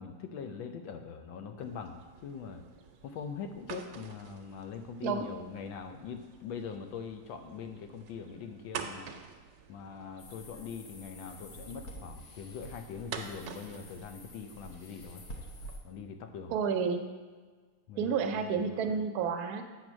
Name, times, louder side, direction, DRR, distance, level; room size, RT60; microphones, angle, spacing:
voice 1, 0.0-2.6 3.0-9.1 9.7-15.2 15.8-16.5 17.9-19.0, left 6 dB, 85° left, 6 dB, 1.5 m, -42 dB
sound 1, 1.6-15.8, right 7 dB, 85° right, 1.4 m, -48 dB
sound 2, 10.2-15.8, equal, 60° left, 1.4 m, -48 dB
voice 2, 16.5-17.1 18.0-19.6, right 6 dB, 65° right, 5 dB, 1.0 m, -30 dB
8.0 x 4.4 x 6.1 m, 1.5 s
omnidirectional pair, 2.1 m